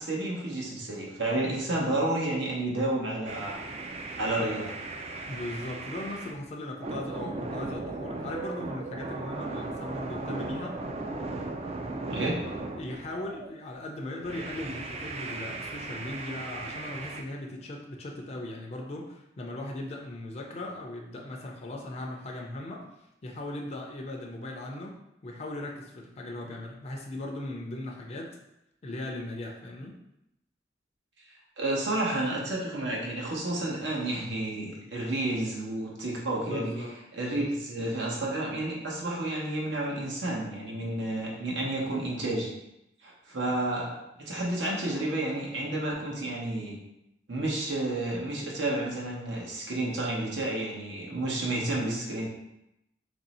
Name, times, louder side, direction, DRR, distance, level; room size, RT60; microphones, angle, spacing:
voice 1, 0.0-3.6 4.2-4.7 12.1-12.4 31.6-36.7 37.1-42.5 43.0-46.8 47.3-52.3, right 2 dB, 80° right, -3 dB, 0.9 m, -31 dB
sound 1, 3.3-6.4 6.8-13.5 14.2-17.2, right 3 dB, 35° right, 0.3 m, -37 dB
voice 2, 5.3-10.8 12.1-12.5 12.8-22.9 23.2-25.0 25.2-28.4 28.8-29.9 36.5-37.0 43.5-43.6, left 1 dB, 40° left, 0 dB, 0.4 m, -38 dB
3.0 x 2.6 x 4.1 m, 0.86 s
head